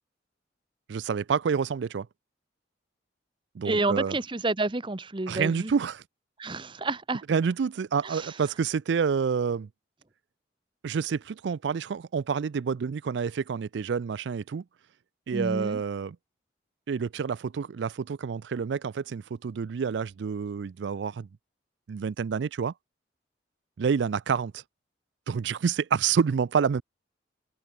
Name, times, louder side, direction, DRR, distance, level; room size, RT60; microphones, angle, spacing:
voice 1, 0.9-2.1 3.5-4.1 5.3-6.0 7.3-9.7 10.8-14.6 15.3-16.2 16.9-21.3 21.9-22.7 23.8-24.6 25.3-26.8, right 6 dB, 70° right, 0.4 m, -28 dB
voice 2, 3.6-5.7 6.4-7.2 8.0-8.3 15.3-15.8, right 2 dB, 25° right, 0.8 m, -29 dB
head